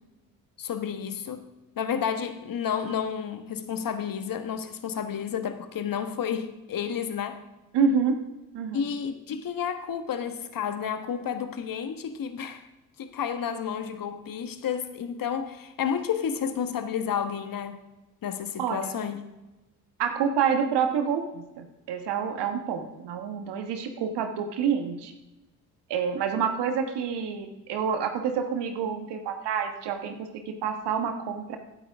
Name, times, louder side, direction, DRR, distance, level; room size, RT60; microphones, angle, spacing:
voice 1, 0.6-1.5 1.8-7.4 8.7-12.6 13.0-17.8 18.2-19.2, left 7 dB, 50° left, 9 dB, 1.4 m, -31 dB
voice 2, 7.7-8.2 8.5-8.9 18.6-19.0 20.0-25.1 25.9-31.6, right 6 dB, 65° right, 6 dB, 1.5 m, -28 dB
16.5 x 9.0 x 3.6 m, 1.0 s
hypercardioid pair, 50°, 44 cm